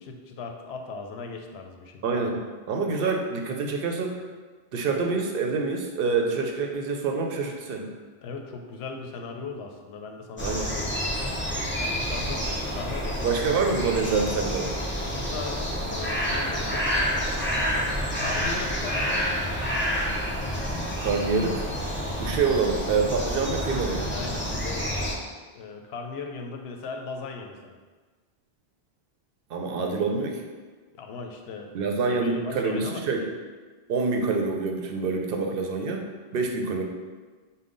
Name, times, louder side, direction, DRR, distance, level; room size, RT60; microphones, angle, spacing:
voice 1, 0.0-2.0 8.2-11.3 11.8-14.0 15.0-17.0 18.2-19.3 24.1-24.9 25.5-27.8 29.7-30.2 30.9-33.0, left 4 dB, 80° left, 3 dB, 0.8 m, -38 dB
voice 2, 2.0-2.4 2.7-4.2 4.7-7.9 10.4-10.7 13.2-14.7 21.0-21.7 22.2-24.1 29.5-30.3 31.7-33.3 33.9-36.1 36.3-36.8, right 4 dB, 65° right, 2 dB, 0.7 m, -26 dB
sound 1, 10.4-25.2, equal, 15° left, 0.5 m, -28 dB
5.3 x 2.2 x 3.8 m, 1.4 s
omnidirectional pair, 1.1 m